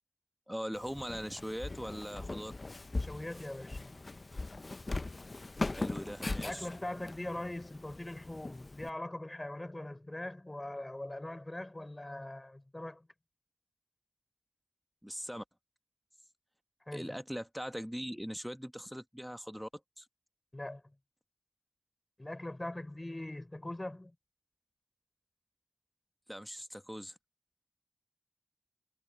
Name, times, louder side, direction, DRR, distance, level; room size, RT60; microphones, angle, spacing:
voice 1, 0.5-2.5 5.7-6.7 15.0-15.4 16.9-19.7 20.0-20.1 26.3-27.2, equal, ahead, 1.2 m, -41 dB
Walk footsteps, 0.7-8.9, left 2 dB, 40° left, 0.6 m, -40 dB
voice 2, 2.9-3.9 6.4-13.1 16.9-17.2 20.5-20.8 22.2-24.1, left 1 dB, 25° left, 5.1 m, -41 dB
wide cardioid pair, 60°, 0 cm